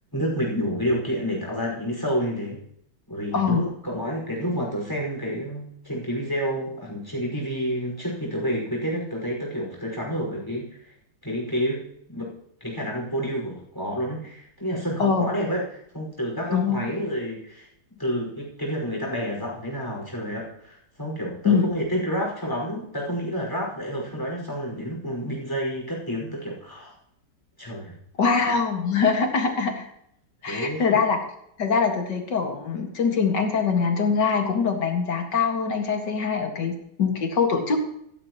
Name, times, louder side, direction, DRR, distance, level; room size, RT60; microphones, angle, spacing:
voice 1, 0.1-2.6 3.1-10.9 11.2-12.3 12.6-17.7 18.0-26.9 27.6-28.0 30.5-31.0, equal, 10° left, -3 dB, 5.5 m, -29 dB
voice 2, 15.0-15.3 16.5-16.8 21.4-21.7 28.2-29.9 30.4-31.2 31.6-37.8, left 5 dB, 80° left, 3 dB, 2.6 m, -23 dB
15.0 x 14.0 x 3.1 m, 0.72 s
omnidirectional pair, 1.9 m